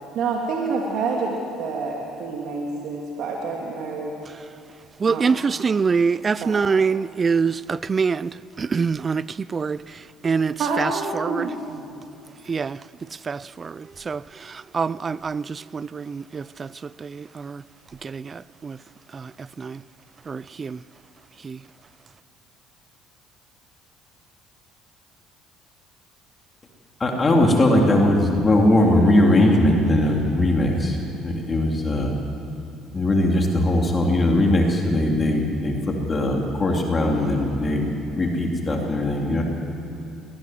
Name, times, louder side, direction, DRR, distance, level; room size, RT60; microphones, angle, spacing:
voice 1, 0.1-4.1 5.1-5.5 6.4-6.6 10.6-11.9, right 4 dB, 65° right, 2.6 m, -28 dB
voice 2, 5.0-11.5 12.5-12.8 13.2-17.6 18.0-18.8 19.1-19.3 19.6-19.8 20.3-20.8 21.4-21.6, right 5 dB, 35° right, 0.4 m, -25 dB
voice 3, 27.0-31.0 31.2-32.1 32.9-39.4, left 1 dB, 30° left, 3.3 m, -20 dB
21.5 x 18.0 x 7.8 m
hypercardioid pair, 70°, 0 cm